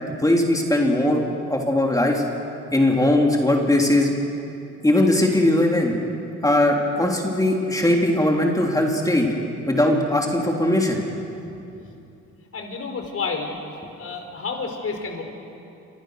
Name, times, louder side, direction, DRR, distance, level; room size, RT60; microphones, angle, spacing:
voice 1, 0.2-1.2 1.5-2.2 2.7-4.1 4.8-5.9 6.4-9.3 9.7-11.0, left 1 dB, 10° left, 0 dB, 3.3 m, -19 dB
voice 2, 12.5-13.6 14.0-15.2, left 4 dB, 50° left, 4 dB, 4.8 m, -30 dB
27.5 x 26.0 x 6.6 m, 2.7 s
cardioid pair, 90°, 30 cm